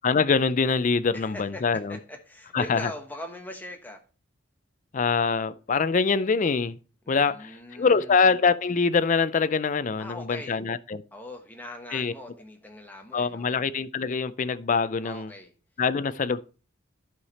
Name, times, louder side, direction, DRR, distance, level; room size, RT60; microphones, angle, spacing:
voice 1, 0.0-2.0 2.5-2.9 4.9-6.8 7.1-11.0 11.9-12.1 13.1-15.3 15.8-16.4, left 5 dB, 40° left, 0.4 m, -24 dB
voice 2, 1.1-4.0 7.0-8.2 10.0-10.6 11.1-13.5 15.0-15.5, left 1 dB, 10° left, 1.2 m, -41 dB
11.5 x 4.9 x 4.2 m
head